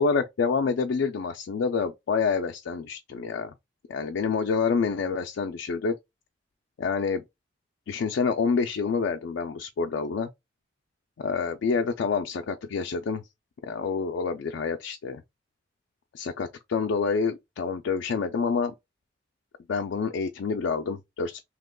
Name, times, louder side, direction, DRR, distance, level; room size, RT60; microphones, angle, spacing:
voice 1, 0.0-3.5 3.9-5.9 6.8-7.2 7.9-10.3 11.2-13.2 13.6-15.2 16.1-18.7 19.7-21.4, left 5 dB, 85° left, 0.4 m, -27 dB
2.8 x 2.2 x 3.5 m
head